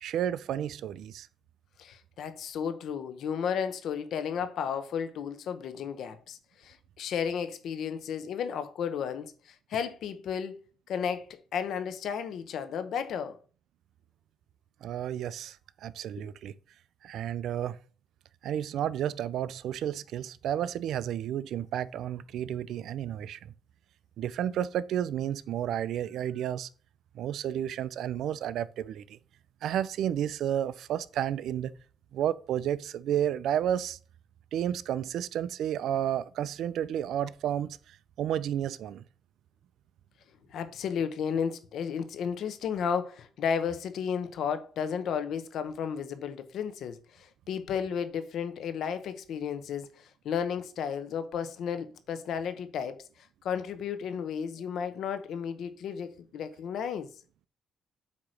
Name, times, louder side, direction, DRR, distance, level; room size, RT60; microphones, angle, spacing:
voice 1, 0.0-1.3 14.8-16.5 17.0-17.8 18.4-23.4 24.2-26.7 27.1-29.2 29.6-31.7 32.1-34.0 34.5-39.0, right 10 dB, 75° right, 0.4 m, -31 dB
voice 2, 1.8-10.6 10.9-13.4 16.2-16.3 40.5-57.1, left 7 dB, 70° left, 1.0 m, -33 dB
8.5 x 3.0 x 6.4 m
cardioid pair, 90°, 0 cm